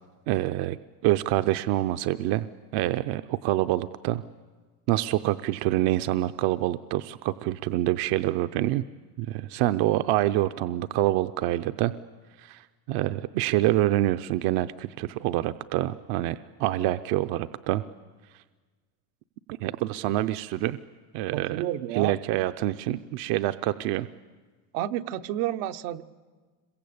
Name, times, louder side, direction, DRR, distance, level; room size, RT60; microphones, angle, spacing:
voice 1, 0.3-0.8 1.0-2.5 2.7-4.2 4.9-8.8 9.2-11.9 12.4-12.6 12.9-17.8 19.5-20.8 21.1-21.6 22.0-24.1, right 15 dB, 65° right, 11 dB, 0.7 m, -26 dB
voice 2, 21.3-22.1 24.7-26.0, right 13 dB, 85° right, 7 dB, 1.1 m, -30 dB
26.5 x 22.5 x 8.7 m, 1.4 s
cardioid pair, 145°, 42 cm